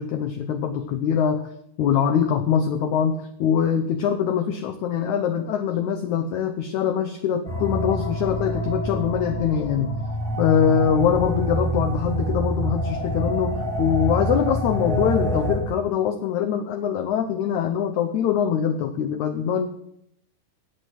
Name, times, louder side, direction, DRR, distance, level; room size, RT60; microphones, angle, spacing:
voice 1, 0.0-1.5 1.8-10.0 10.4-19.7, left 8 dB, 80° left, 9 dB, 1.7 m, -23 dB
sound 1, 7.5-15.6, right 1 dB, 20° left, 2.8 m, -26 dB
16.5 x 7.9 x 6.1 m, 0.73 s
omnidirectional pair, 4.3 m